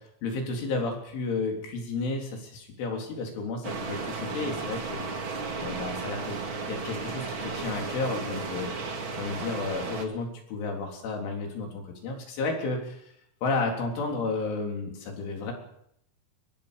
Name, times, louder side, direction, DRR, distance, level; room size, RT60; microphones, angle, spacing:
voice 1, 0.2-5.1 5.6-8.8 9.1-13.0 13.4-15.5, left 3 dB, 90° left, 1 dB, 6.2 m, -32 dB
sound 1, 3.6-10.0, right 4 dB, 40° right, 2.1 m, -34 dB
24.0 x 23.5 x 5.3 m, 0.75 s
omnidirectional pair, 5.3 m